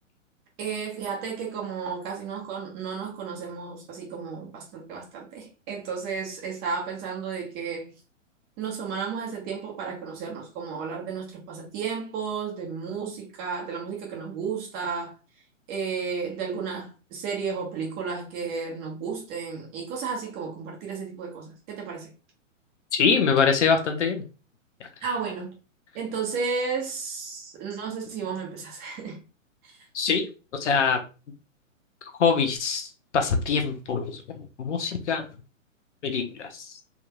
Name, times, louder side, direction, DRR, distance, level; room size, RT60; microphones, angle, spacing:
voice 1, 0.6-7.9 8.6-15.1 15.7-22.1 25.0-25.5 25.9-29.2 29.6-29.7, right 5 dB, 25° right, 1.0 m, -33 dB
voice 2, 22.9-24.2 29.9-30.3 30.6-31.0 32.2-32.9 33.1-34.2 34.6-35.2 36.0-36.6, left 5 dB, 65° left, 0.9 m, -23 dB
3.6 x 3.0 x 2.2 m
hypercardioid pair, 125°, 39 cm